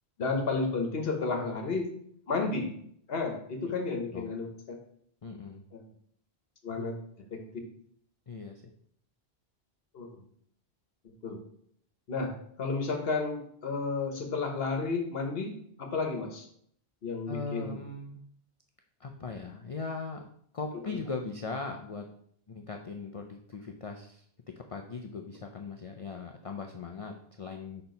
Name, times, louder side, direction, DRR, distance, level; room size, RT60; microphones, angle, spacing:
voice 1, 0.2-1.9 2.3-2.7 3.1-4.8 5.7-5.8 6.6-7.0 7.3-7.4 9.9-10.2 11.0-11.4 12.1-15.5 15.8-16.5 17.0-17.8 20.8-21.0, left 3 dB, 70° left, 4 dB, 1.3 m, -32 dB
voice 2, 5.2-5.6 6.8-6.9 8.3-8.6 17.3-18.2 19.0-22.1 22.5-24.2 24.7-27.8, left 4 dB, 40° left, 3 dB, 0.5 m, -39 dB
5.4 x 4.5 x 5.2 m, 0.65 s
omnidirectional pair, 1.1 m